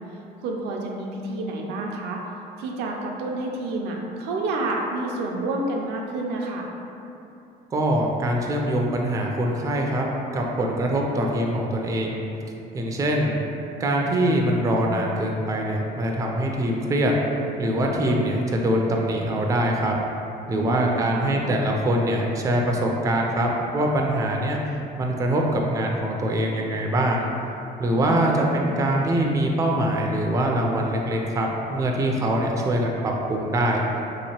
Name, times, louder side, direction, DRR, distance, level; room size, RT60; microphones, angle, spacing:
voice 1, 0.4-2.2 2.6-6.7 20.5-21.4 27.9-28.7, right 2 dB, 80° right, 0 dB, 0.5 m, -29 dB
voice 2, 7.7-10.0 10.3-12.2 12.7-13.4 13.8-17.1 17.6-19.9 20.5-24.6 25.0-27.3 27.8-33.8, right 1 dB, 20° right, 0 dB, 0.3 m, -23 dB
2.9 x 2.9 x 2.8 m, 2.8 s
cardioid pair, 110°, 17 cm